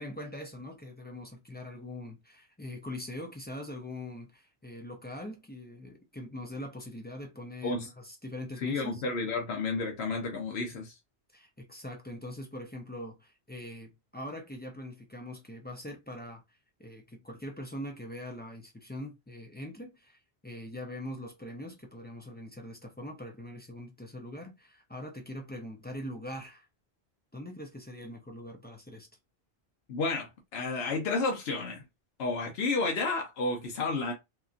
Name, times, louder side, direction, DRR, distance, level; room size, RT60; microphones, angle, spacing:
voice 1, 0.0-9.0 11.3-16.4 16.8-26.7 27.3-29.1, left 1 dB, 15° left, 0.3 m, -42 dB
voice 2, 8.6-10.9 29.9-31.8 32.2-34.1, left 3 dB, 75° left, 0.9 m, -31 dB
2.9 x 2.4 x 2.4 m
omnidirectional pair, 1.1 m